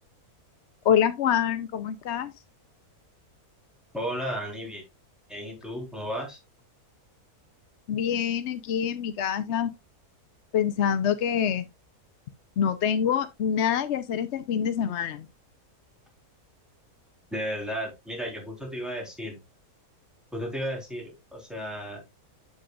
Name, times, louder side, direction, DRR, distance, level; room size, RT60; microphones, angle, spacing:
voice 1, 0.8-2.3 7.9-9.7 10.5-11.7 12.6-15.3, left 8 dB, 60° left, 0.8 m, -26 dB
voice 2, 3.9-4.8 5.3-6.4 17.3-19.4 20.3-22.0, equal, ahead, 3.9 m, -34 dB
8.6 x 7.7 x 2.4 m
omnidirectional pair, 1.6 m